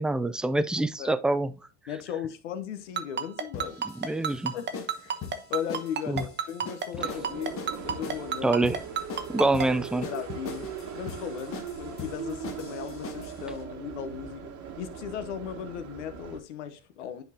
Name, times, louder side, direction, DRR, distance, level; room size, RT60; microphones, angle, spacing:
voice 1, 0.0-1.5 4.0-4.5 6.1-6.2 8.4-8.8 9.3-10.1, right 2 dB, 5° right, 0.3 m, -25 dB
voice 2, 1.9-3.8 4.5-8.6 9.3-9.5 9.9-14.5 14.8-17.2, left 8 dB, 90° left, 1.0 m, -37 dB
Ringtone, 3.0-9.7, right 7 dB, 30° right, 0.9 m, -29 dB
sound 1, 3.5-13.4, left 6 dB, 40° left, 1.2 m, -41 dB
sound 2, 7.0-16.4, right 7 dB, 55° right, 1.5 m, -40 dB
10.0 x 4.2 x 2.8 m
supercardioid pair, 95°, 34 cm